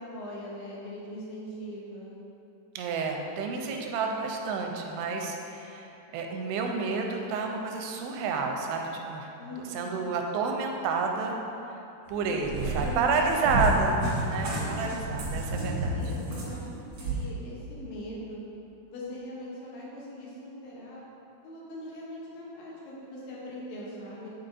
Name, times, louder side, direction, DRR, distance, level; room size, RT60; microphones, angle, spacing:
voice 1, 0.0-2.2 9.4-10.0 12.1-13.9 14.6-14.9 15.5-16.7 17.0-18.4 18.9-21.1 21.4-24.3, left 1 dB, 80° left, -5 dB, 3.0 m, -41 dB
voice 2, 2.8-9.4 9.7-11.4 12.1-16.0, right 4 dB, 90° right, 2 dB, 2.7 m, -30 dB
Cat, 12.1-17.2, right 1 dB, 70° right, 1.7 m, -31 dB
8.5 x 4.2 x 2.7 m, 2.9 s
omnidirectional pair, 4.8 m